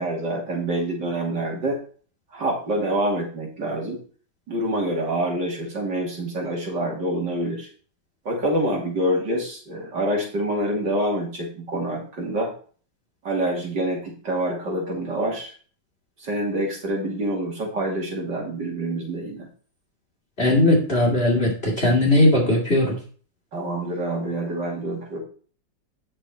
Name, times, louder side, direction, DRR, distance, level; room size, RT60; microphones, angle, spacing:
voice 1, 0.0-1.8 2.3-4.0 4.5-7.7 8.2-12.5 13.2-15.5 16.2-19.5 23.5-25.2, right 1 dB, 65° right, -1 dB, 3.3 m, -26 dB
voice 2, 20.4-22.9, left 1 dB, 30° left, -2 dB, 2.7 m, -18 dB
8.8 x 6.7 x 4.4 m, 0.41 s
omnidirectional pair, 2.1 m